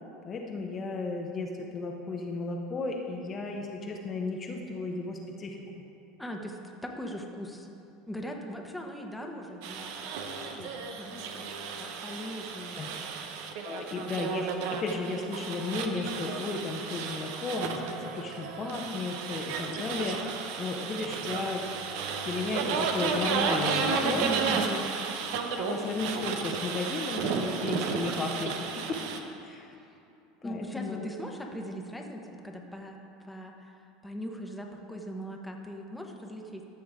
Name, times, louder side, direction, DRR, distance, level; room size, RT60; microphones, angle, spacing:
voice 1, 0.2-5.6 10.7-10.9 12.7-12.9 13.6-21.7 22.2-24.3 25.4-29.0 29.4-29.7 30.4-31.1, left 3 dB, 35° left, 1 dB, 0.9 m, -34 dB
voice 2, 6.2-7.7 8.1-10.1 10.5-13.1 24.0-24.9 30.4-33.0 33.3-36.6, equal, 5° left, 1 dB, 1.1 m, -40 dB
sound 1, 9.6-29.2, right 5 dB, 65° right, 0.7 m, -33 dB
14.0 x 6.2 x 3.7 m, 2.7 s
hypercardioid pair, 85°, 0 cm